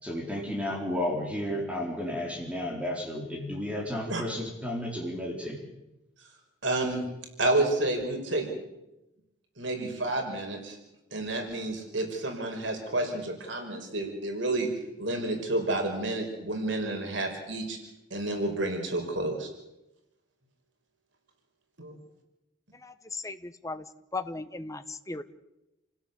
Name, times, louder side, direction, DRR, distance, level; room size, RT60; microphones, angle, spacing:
voice 1, 0.0-5.6, left 1 dB, 5° right, -1 dB, 4.1 m, -32 dB
voice 2, 6.6-7.0 7.4-8.5 9.6-10.8 11.1-14.7 15.0-17.8 18.1-19.5 21.8-21.9, right 2 dB, 80° right, 3 dB, 5.4 m, -30 dB
voice 3, 22.8-23.8 24.1-25.2, left 3 dB, 15° left, 10 dB, 1.2 m, -37 dB
28.5 x 16.5 x 8.4 m, 0.94 s
head